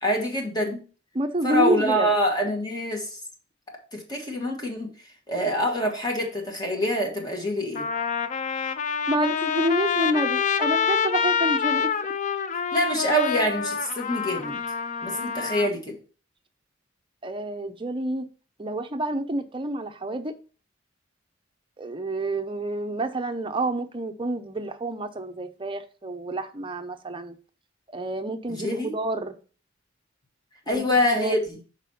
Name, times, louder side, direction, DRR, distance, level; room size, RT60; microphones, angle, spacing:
voice 1, 0.0-0.8 1.4-3.2 3.9-4.9 5.3-7.9 12.7-14.6 15.0-16.0 28.5-28.9 30.7-31.6, equal, 20° left, 1 dB, 1.5 m, -25 dB
voice 2, 1.1-2.1 9.1-11.9 17.2-18.3 18.6-20.3 21.8-27.4 27.9-29.4 30.7-30.8 31.1-31.4, right 1 dB, 25° right, 7 dB, 0.6 m, -28 dB
Trumpet, 7.0-7.1 7.7-15.7, left 6 dB, 40° left, 0.4 m, -27 dB
6.0 x 4.1 x 5.5 m, 0.38 s
head